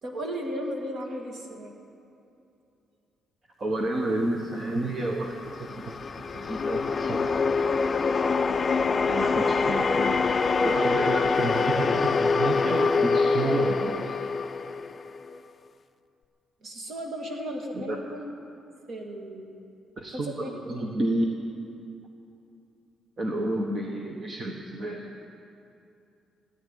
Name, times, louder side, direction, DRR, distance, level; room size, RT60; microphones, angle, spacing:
voice 1, 0.0-1.7 16.6-18.3 18.9-19.6 20.1-20.5, equal, 50° right, 2 dB, 2.2 m, -35 dB
voice 2, 3.6-6.0 6.3-7.7 9.0-14.2 17.7-18.0 20.0-21.2 23.2-25.1, right 2 dB, 30° right, 2 dB, 1.0 m, -31 dB
sound 1, 5.0-15.4, left 4 dB, 25° left, 0.4 m, -25 dB
14.5 x 10.5 x 9.2 m, 2.7 s
cardioid pair, 155°, 0 cm